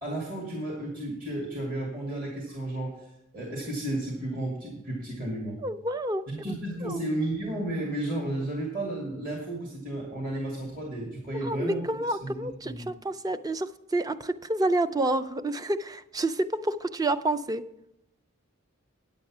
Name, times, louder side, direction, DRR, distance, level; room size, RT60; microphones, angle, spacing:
voice 1, 0.0-5.6 6.3-12.9, right 1 dB, 45° right, -2 dB, 2.2 m, -33 dB
voice 2, 5.6-6.2 6.8-7.0 11.4-17.6, right 1 dB, 20° right, 12 dB, 0.4 m, -29 dB
9.6 x 8.2 x 6.0 m, 0.83 s
head